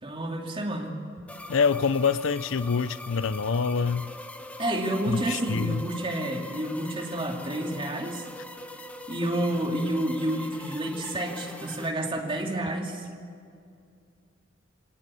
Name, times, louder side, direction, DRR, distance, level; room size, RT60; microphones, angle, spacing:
voice 1, 0.0-0.9 4.6-8.3 9.1-13.1, right 1 dB, 25° right, 1 dB, 2.6 m, -29 dB
sound 1, 1.3-11.9, left 1 dB, 5° left, 1.2 m, -42 dB
voice 2, 1.5-4.1 5.1-5.8, left 5 dB, 75° left, 16 dB, 0.6 m, -26 dB
24.0 x 18.5 x 8.4 m, 2.4 s
head